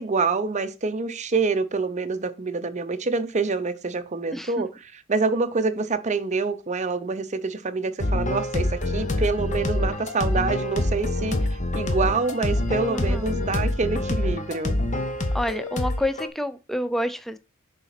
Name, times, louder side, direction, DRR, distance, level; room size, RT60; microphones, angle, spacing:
voice 1, 0.0-4.7 5.1-11.4 11.7-14.7, right 4 dB, 35° right, 0.6 m, -26 dB
voice 2, 4.3-4.6 12.9-13.4 15.3-17.4, equal, ahead, 0.4 m, -28 dB
sound 1, 8.0-16.3, left 1 dB, 35° left, 1.0 m, -26 dB
6.6 x 4.1 x 5.8 m
head